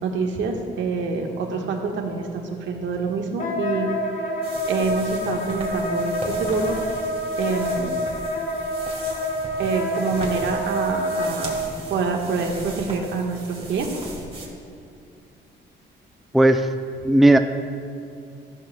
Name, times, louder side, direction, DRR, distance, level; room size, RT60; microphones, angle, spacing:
voice 1, 0.0-3.9 4.6-6.8 7.4-8.0 9.6-11.6 11.9-14.0, right 4 dB, 70° right, 2 dB, 1.4 m, -26 dB
Wind instrument woodwind instrument, 3.4-11.6, equal, 40° left, 1.6 m, -27 dB
sound 1, 4.4-14.5, right 2 dB, 30° right, 2.4 m, -38 dB
voice 2, 16.3-16.7 17.0-17.4, right 1 dB, ahead, 6 dB, 0.4 m, -15 dB
14.5 x 11.5 x 2.3 m, 2.5 s
cardioid pair, 90°, 20 cm